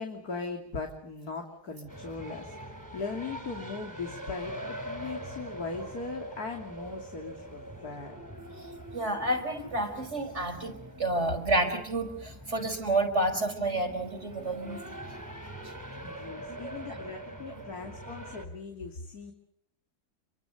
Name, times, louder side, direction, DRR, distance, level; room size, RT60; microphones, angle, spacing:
voice 1, 0.0-8.1 16.0-19.3, left 4 dB, 70° left, 3 dB, 3.3 m, -39 dB
sound 1, 1.9-18.5, right 1 dB, 10° right, 3.0 m, -43 dB
voice 2, 8.9-14.8 16.6-16.8, right 1 dB, 45° right, 7 dB, 5.3 m, -30 dB
28.5 x 23.5 x 6.7 m, 0.71 s
omnidirectional pair, 1.7 m